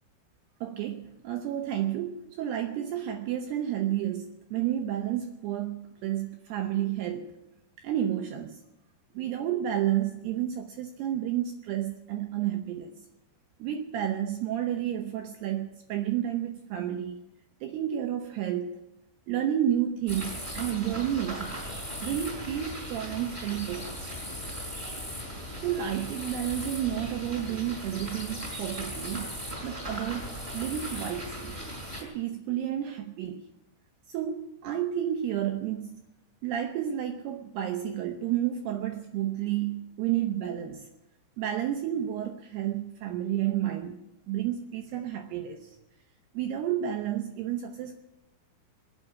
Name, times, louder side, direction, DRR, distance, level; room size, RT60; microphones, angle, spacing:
voice 1, 0.6-7.3 7.8-8.6 9.1-12.9 13.6-17.2 17.6-18.8 19.3-21.6 22.0-24.1 25.6-29.3 29.6-31.6 32.0-33.4 34.1-36.0 36.4-40.9 41.4-44.0 44.3-45.8 46.3-48.0, right 11 dB, 80° right, 2.5 m, -31 dB
sound 1, 20.1-32.0, equal, 10° right, 4.0 m, -38 dB
21.0 x 9.3 x 7.3 m
omnidirectional pair, 5.6 m